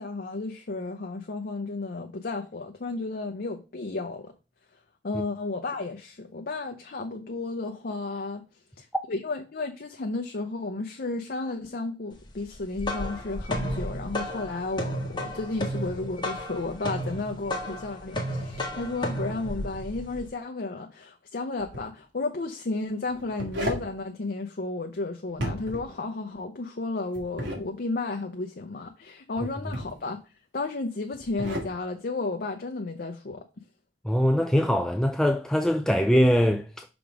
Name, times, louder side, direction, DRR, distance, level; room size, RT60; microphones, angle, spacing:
voice 1, 0.0-4.3 5.0-8.4 8.8-30.2 30.5-33.4, left 3 dB, 55° left, 0.7 m, -33 dB
sound 1, 12.5-20.3, equal, 25° left, 1.4 m, -33 dB
sound 2, 21.6-21.9 23.1-23.9 25.3-25.9 27.1-27.6 29.4-30.0 31.1-31.7, equal, 90° right, 1.9 m, -33 dB
voice 2, 34.0-36.9, equal, 5° left, 0.3 m, -22 dB
5.9 x 3.6 x 5.0 m
head